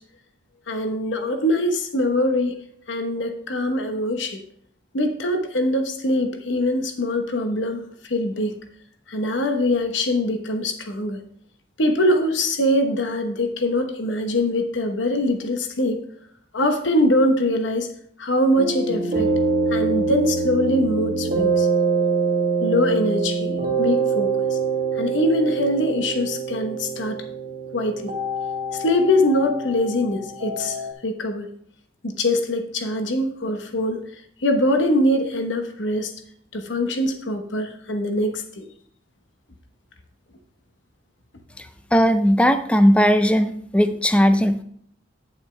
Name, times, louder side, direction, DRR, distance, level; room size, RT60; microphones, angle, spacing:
voice 1, 0.7-2.6 2.9-4.4 4.9-7.8 8.1-8.6 9.1-11.2 11.8-16.0 16.5-17.9 18.2-19.3 19.7-21.7 22.6-23.5 23.8-24.6 25.0-27.2 27.7-28.1 28.8-30.8 31.0-31.5 32.0-34.0 34.4-36.1 36.5-38.6, left 1 dB, 70° left, 6 dB, 1.0 m, -23 dB
sound 1, 18.6-30.9, right 4 dB, 45° right, 1.4 m, -24 dB
voice 2, 41.9-44.6, equal, 5° left, 9 dB, 0.5 m, -17 dB
9.1 x 8.0 x 3.3 m, 0.63 s
head